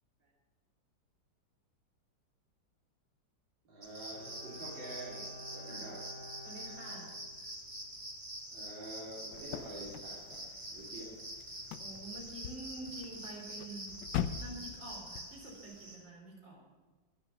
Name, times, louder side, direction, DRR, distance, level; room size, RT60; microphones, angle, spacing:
voice 1, 3.6-6.0 7.4-7.5 8.5-10.4 10.7-11.2, right 1 dB, 90° right, -5 dB, 3.9 m, -47 dB
sound 1, 3.8-16.0, right 1 dB, 30° right, 3.2 m, -46 dB
Bowed string instrument, 4.1-7.9 8.2-8.3, equal, 55° right, 4.5 m, -51 dB
voice 2, 6.4-7.1 11.8-14.0 14.4-16.6, right 2 dB, 70° right, -1 dB, 5.0 m, -48 dB
sound 2, 9.3-15.2, left 9 dB, 90° left, 1.5 m, -43 dB
22.5 x 7.9 x 7.4 m, 1.3 s
omnidirectional pair, 2.0 m